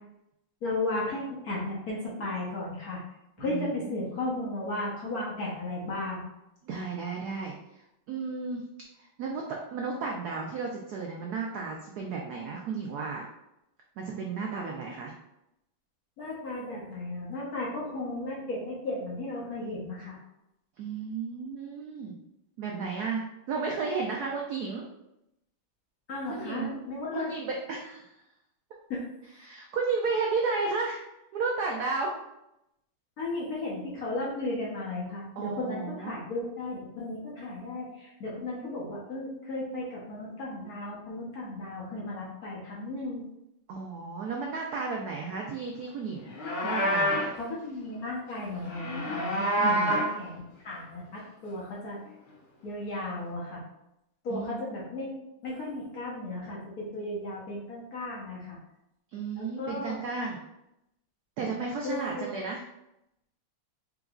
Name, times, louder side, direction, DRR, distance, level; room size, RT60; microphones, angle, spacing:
voice 1, 0.6-3.0 3.4-6.3 16.2-20.2 26.1-27.3 28.9-29.1 33.2-43.2 47.4-52.0 52.6-53.6 54.2-55.1 55.4-58.6 59.3-60.0 61.8-62.2, left 2 dB, 55° left, -5 dB, 1.3 m, -35 dB
voice 2, 3.4-4.1 6.6-8.7 9.0-13.3 14.0-15.1 20.8-22.2 22.6-24.8 26.3-26.7 27.1-28.1 29.4-31.0 31.3-32.1 35.4-36.1 43.7-46.3 46.6-47.3 49.6-50.0 54.3-54.6 59.1-60.4 61.4-62.6, right 4 dB, 80° right, 0 dB, 0.8 m, -33 dB
Livestock farm animals working animals, 46.2-47.4 48.7-50.2, equal, 80° left, 1.7 m, -27 dB
4.8 x 3.0 x 2.4 m, 0.85 s
omnidirectional pair, 2.2 m